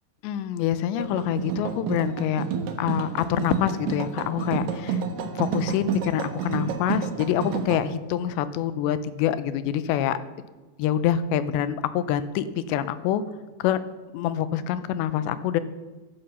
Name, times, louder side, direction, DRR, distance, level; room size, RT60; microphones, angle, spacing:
voice 1, 0.2-2.4 2.8-5.0 5.4-10.2 10.8-13.2 13.6-13.8 14.1-15.6, left 10 dB, 85° left, 14 dB, 3.0 m, -26 dB
sound 1, 1.0-7.8, right 5 dB, 75° right, 3.2 m, -30 dB
15.0 x 12.0 x 5.6 m, 1.2 s
omnidirectional pair, 5.1 m